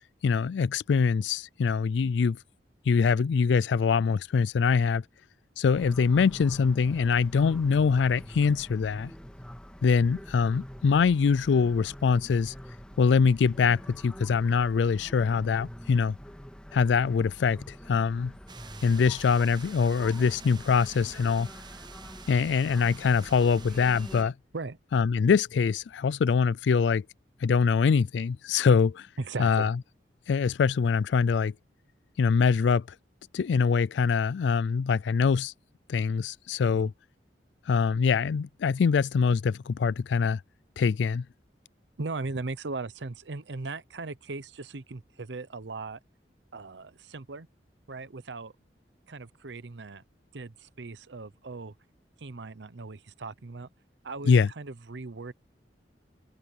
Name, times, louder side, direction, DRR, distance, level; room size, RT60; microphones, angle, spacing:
voice 1, 0.2-2.4 2.9-5.0 5.6-9.1 9.8-12.5 13.0-16.2 16.7-18.3 18.8-21.5 22.3-24.3 24.9-27.0 27.4-29.1 29.4-29.8 30.3-31.5 32.2-32.9 33.3-35.5 35.9-36.9 37.7-40.4 40.8-41.3 54.3-54.5, left 5 dB, 80° left, 0.4 m, -24 dB
sound 1, 5.7-24.3, equal, 5° left, 1.8 m, -45 dB
sound 2, 18.5-24.2, right 5 dB, 25° right, 0.7 m, -48 dB
voice 2, 29.2-29.7 36.7-36.9 42.0-46.0 46.5-47.5 47.9-48.5 49.1-50.0 50.3-51.7 52.2-53.7 54.0-55.3, right 3 dB, 80° right, 0.8 m, -38 dB
head